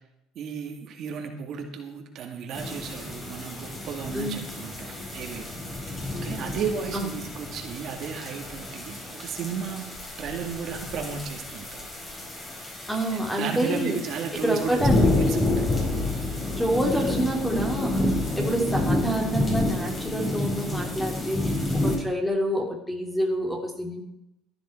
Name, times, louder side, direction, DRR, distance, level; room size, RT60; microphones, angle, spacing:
voice 1, 0.4-5.5 6.2-9.9 10.2-11.8 13.4-15.8 16.7-17.2, right 6 dB, 55° right, 3 dB, 2.2 m, -34 dB
sound 1, 2.5-22.0, left 2 dB, 20° left, 4.8 m, -29 dB
voice 2, 12.9-14.0 14.4-15.3 16.6-18.1 18.3-21.5 21.8-24.0, equal, 5° left, 2 dB, 2.8 m, -27 dB
15.0 x 10.5 x 4.5 m, 0.82 s
cardioid pair, 120°, 0 cm